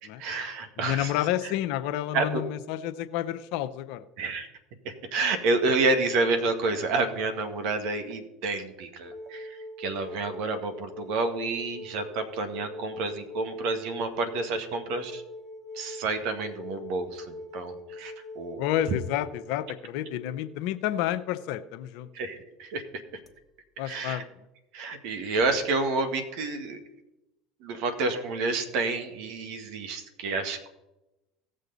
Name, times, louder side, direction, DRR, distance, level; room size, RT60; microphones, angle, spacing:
voice 1, 0.0-1.1 1.4-1.5 2.1-2.4 4.2-4.5 4.9-15.2 15.7-18.7 22.1-22.8 23.8-24.2 24.7-26.8 27.6-30.7, right 3 dB, 70° right, 8 dB, 1.7 m, -29 dB
voice 2, 0.8-4.0 18.6-22.1 23.8-24.2, left 12 dB, 70° left, 12 dB, 0.7 m, -30 dB
sound 1, 9.1-21.5 23.3-23.4, left 1 dB, 20° left, 1.4 m, -43 dB
17.0 x 6.6 x 4.0 m, 0.96 s
hypercardioid pair, 90°, 0 cm